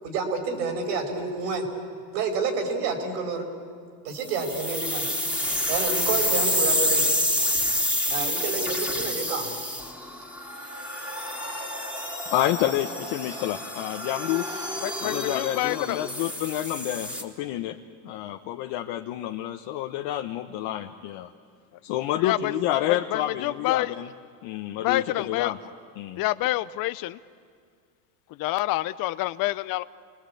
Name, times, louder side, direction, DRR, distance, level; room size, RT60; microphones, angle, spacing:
voice 1, 0.0-1.7 2.1-3.5 4.0-5.1 5.7-7.0 8.1-9.5, right 4 dB, 85° right, 2 dB, 5.5 m, -29 dB
sound 1, 4.3-17.2, left 1 dB, 5° right, 3.2 m, -28 dB
voice 2, 12.3-14.5 15.0-17.8 18.0-21.3 21.8-24.1 24.4-25.6 25.9-26.2, left 13 dB, 65° left, 4 dB, 1.2 m, -29 dB
voice 3, 14.8-16.0 22.2-22.4 22.9-23.9 24.8-25.5 26.2-27.2 28.4-29.8, left 17 dB, 45° left, 13 dB, 0.6 m, -27 dB
29.0 x 20.0 x 8.5 m, 2.1 s
supercardioid pair, 115°, 49 cm